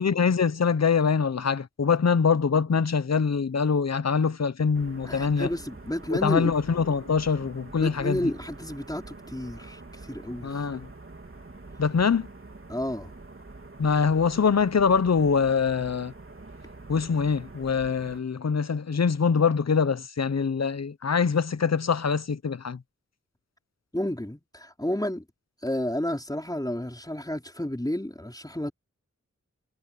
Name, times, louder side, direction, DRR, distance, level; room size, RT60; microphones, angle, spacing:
voice 1, 0.0-5.5 6.2-8.2 10.4-10.9 11.8-12.3 13.8-16.1 16.9-22.8, left 5 dB, 65° left, 0.8 m, -24 dB
sound 1, 4.7-18.2, right 2 dB, 50° right, 3.3 m, -45 dB
voice 2, 5.0-6.5 7.8-10.6 12.7-13.1 23.9-25.2 25.6-28.7, left 1 dB, 15° left, 4.8 m, -31 dB
wide cardioid pair, 70°, 29 cm